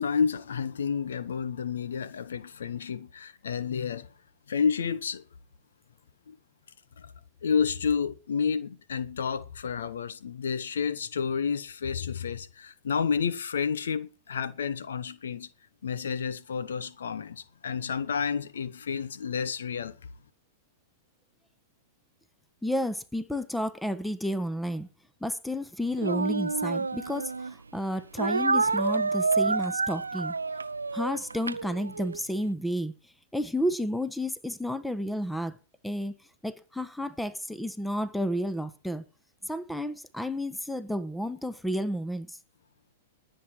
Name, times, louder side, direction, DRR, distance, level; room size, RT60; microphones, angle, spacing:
voice 1, 0.0-4.1 4.5-5.2 6.3-6.4 7.0-7.1 7.4-15.5 15.8-20.0, left 6 dB, 75° left, 1.0 m, -30 dB
voice 2, 22.6-24.9 25.2-30.6 30.9-32.9 33.3-35.6 35.8-36.1 36.4-39.0 39.4-42.4, equal, 5° left, 1.1 m, -31 dB
Speech, 26.0-27.5 28.2-32.2, right 4 dB, 90° right, 0.5 m, -28 dB
20.5 x 7.9 x 4.5 m
hypercardioid pair, 105°, 0 cm